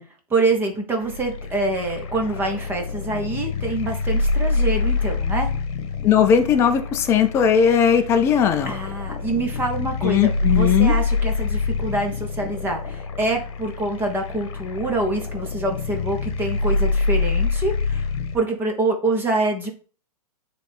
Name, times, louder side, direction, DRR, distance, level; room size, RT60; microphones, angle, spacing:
voice 1, 0.3-5.5 8.6-18.1 18.3-19.7, right 2 dB, 10° right, 2 dB, 0.9 m, -25 dB
sound 1, 1.0-18.4, left 4 dB, 50° left, 1.2 m, -26 dB
voice 2, 6.0-8.7 10.0-11.0, left 8 dB, 15° left, 7 dB, 0.4 m, -18 dB
8.9 x 3.4 x 3.4 m, 0.38 s
hypercardioid pair, 145°, 19 cm